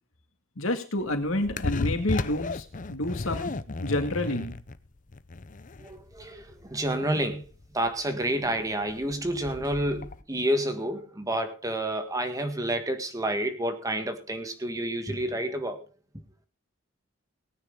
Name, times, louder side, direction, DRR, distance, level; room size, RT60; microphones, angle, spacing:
voice 1, 0.6-2.6 2.9-4.5, left 1 dB, 90° left, 2.3 m, -29 dB
sound 1, 1.0-10.2, left 3 dB, 40° left, 0.7 m, -35 dB
voice 2, 5.8-15.9, right 1 dB, 15° right, 1.7 m, -29 dB
19.0 x 9.6 x 3.8 m
head